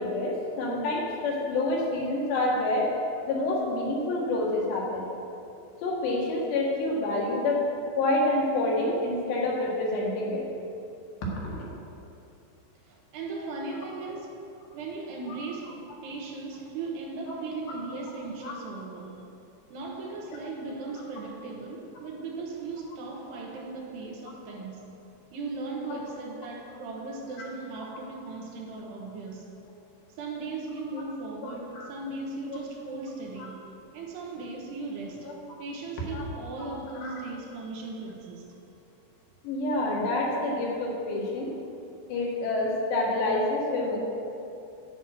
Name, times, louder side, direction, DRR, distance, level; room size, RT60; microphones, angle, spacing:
voice 1, 0.0-2.9 3.3-5.1 5.8-10.5 11.2-11.7 18.4-18.5 25.9-26.0 31.4-31.9 33.4-33.5 36.1-36.2 37.0-37.1 39.4-41.5 42.1-44.0, left 2 dB, 75° left, 4.0 m, -28 dB
voice 2, 12.9-19.3 19.7-24.9 25.3-29.5 30.2-33.7 33.9-38.5, right 3 dB, 75° right, 3.1 m, -37 dB
10.0 x 6.0 x 8.5 m
omnidirectional pair, 5.0 m